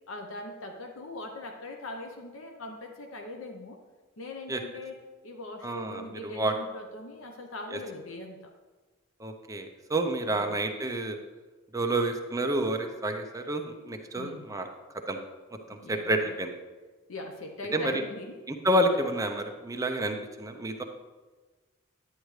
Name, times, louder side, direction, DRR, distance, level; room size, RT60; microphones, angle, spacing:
voice 1, 0.1-3.8 4.2-8.5 10.3-10.6 14.2-14.5 15.8-16.4 17.1-18.4, left 2 dB, 70° left, 3 dB, 0.8 m, -41 dB
voice 2, 5.6-6.5 7.7-7.8 9.2-11.2 11.7-14.7 15.1-15.2 15.7-16.5 17.7-18.0 18.5-20.8, right 1 dB, 15° right, 4 dB, 0.7 m, -29 dB
10.5 x 9.2 x 3.2 m, 1.3 s
head